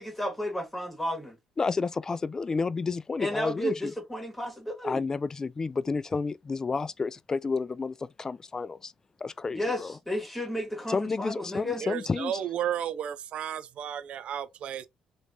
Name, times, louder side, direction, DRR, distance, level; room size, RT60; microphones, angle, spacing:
voice 1, 0.0-1.4 3.2-5.0 9.5-11.8, equal, 10° left, 1.4 m, -32 dB
voice 2, 1.6-3.9 4.8-8.9 9.2-10.0 10.9-12.3, left 4 dB, 25° left, 0.4 m, -31 dB
voice 3, 11.8-14.9, right 10 dB, 65° right, 0.5 m, -33 dB
3.4 x 3.1 x 2.7 m
cardioid pair, 95°, 2 cm